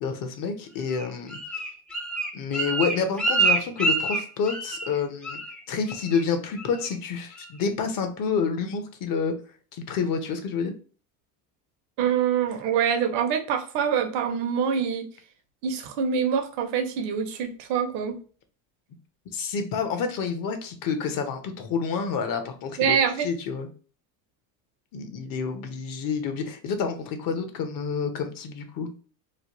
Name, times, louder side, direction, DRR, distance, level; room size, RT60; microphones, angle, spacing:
voice 1, 0.0-1.4 2.3-5.4 5.7-9.3 9.7-10.7 19.3-23.7 24.9-28.9, left 5 dB, 45° left, 0.8 m, -28 dB
Bird, 0.9-5.0 5.2-5.6 5.9-6.2 6.6-7.0 7.4-7.5, right 3 dB, ahead, 0.3 m, -27 dB
voice 2, 12.0-15.1 15.6-18.2 22.8-23.3, right 7 dB, 65° right, 0.9 m, -25 dB
3.1 x 2.3 x 2.8 m
supercardioid pair, 100°, 46 cm